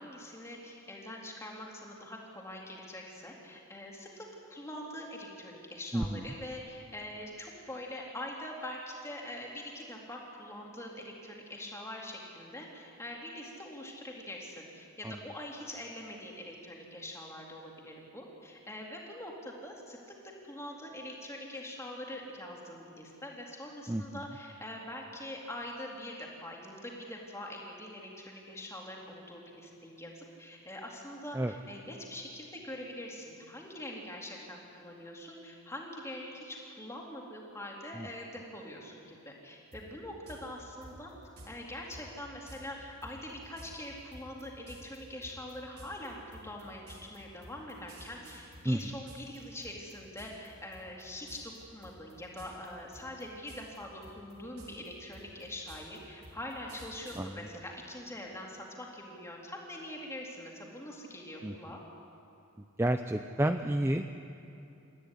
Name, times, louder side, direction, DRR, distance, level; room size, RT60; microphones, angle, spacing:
voice 1, 0.0-20.0 20.5-41.1 41.5-61.8, left 1 dB, 15° left, -2 dB, 3.5 m, -44 dB
voice 2, 5.9-6.3 15.0-15.2 23.9-24.2 31.3-31.5 38.0-38.1 48.6-48.9 57.2-57.4 61.4-61.5 62.8-64.0, right 1 dB, 10° right, 8 dB, 0.5 m, -30 dB
sound 1, 39.7-39.8 40.3-40.4 40.8-41.5 41.9-42.0 42.5-42.6 43.0-49.4 49.6-50.5 50.7-51.0 51.3-51.6 51.8-52.7 52.9-53.8 54.0-57.2, right 1 dB, 85° right, 5.9 m, -51 dB
27.5 x 14.0 x 9.9 m, 2.8 s
head